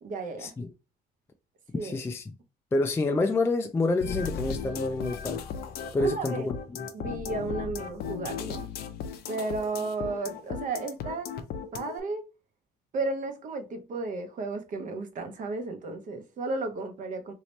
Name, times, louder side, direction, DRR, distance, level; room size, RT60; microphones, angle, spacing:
voice 1, 0.0-0.5 1.7-2.0 6.0-6.5 6.9-8.7 9.3-11.3 11.7-12.2 12.9-17.3, right 3 dB, 50° right, 0.8 m, -33 dB
voice 2, 1.8-2.2 2.7-5.4 5.9-6.9, left 2 dB, 15° left, 0.3 m, -28 dB
sound 1, 4.0-12.0, left 6 dB, 65° left, 0.6 m, -36 dB
3.0 x 2.8 x 3.1 m
cardioid pair, 110°, 17 cm